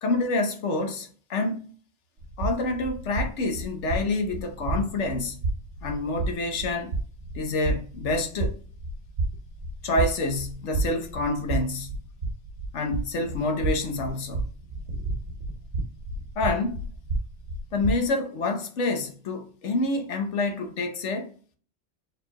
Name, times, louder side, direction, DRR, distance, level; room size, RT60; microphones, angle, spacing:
voice 1, 0.0-1.7 2.4-5.4 5.8-7.0 7.3-8.6 9.8-11.9 12.7-14.5 16.4-16.9 17.7-21.3, left 2 dB, 85° left, 1.2 m, -27 dB
sound 1, 2.2-18.1, right 2 dB, 75° right, 1.1 m, -32 dB
4.6 x 3.7 x 2.3 m
omnidirectional pair, 1.2 m